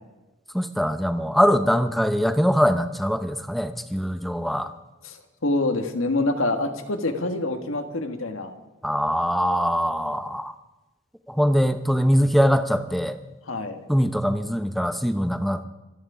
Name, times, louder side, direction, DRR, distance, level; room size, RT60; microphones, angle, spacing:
voice 1, 0.5-4.7 8.8-10.5 11.3-13.2 13.9-15.7, equal, ahead, 9 dB, 0.7 m, -22 dB
voice 2, 5.0-8.5 13.5-13.8, left 2 dB, 85° left, 6 dB, 1.8 m, -26 dB
26.0 x 9.6 x 5.0 m, 1.1 s
head